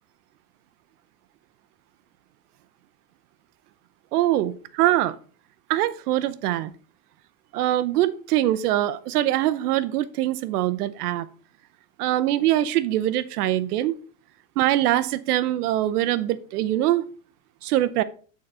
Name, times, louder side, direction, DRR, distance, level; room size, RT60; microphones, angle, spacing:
voice 1, 4.1-5.2 5.7-6.7 7.5-11.3 12.0-14.0 14.6-17.1 17.6-18.0, right 14 dB, 90° right, 13 dB, 0.7 m, -23 dB
8.8 x 4.1 x 4.2 m, 0.42 s
supercardioid pair, 170°, 45 cm